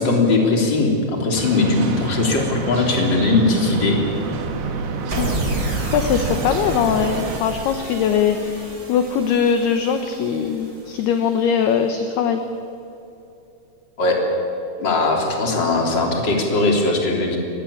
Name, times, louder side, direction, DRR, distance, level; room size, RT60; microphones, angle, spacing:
voice 1, 0.0-4.0 14.0-14.2 14.8-17.4, left 3 dB, 25° left, 1 dB, 3.5 m, -19 dB
sound 1, 1.3-7.4, right 4 dB, 65° right, 3.6 m, -28 dB
sound 2, 5.1-11.4, right 2 dB, 20° right, 3.5 m, -30 dB
voice 2, 5.9-12.4, left 7 dB, 70° left, 7 dB, 2.7 m, -21 dB
24.5 x 19.5 x 8.7 m, 2.8 s
omnidirectional pair, 5.5 m